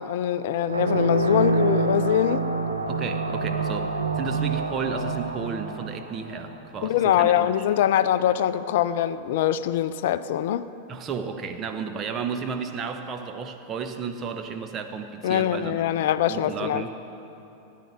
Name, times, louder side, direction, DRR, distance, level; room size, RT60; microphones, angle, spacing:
voice 1, 0.0-2.4 6.8-10.7 15.2-16.8, left 11 dB, 55° left, 14 dB, 0.4 m, -23 dB
sound 1, 0.7-6.8, right 3 dB, 80° right, 0.9 m, -27 dB
voice 2, 2.9-7.3 10.9-15.9 16.3-17.0, right 6 dB, 30° right, 7 dB, 1.0 m, -33 dB
17.5 x 10.5 x 5.0 m, 2.9 s
figure-of-eight pair, 90°, 0 cm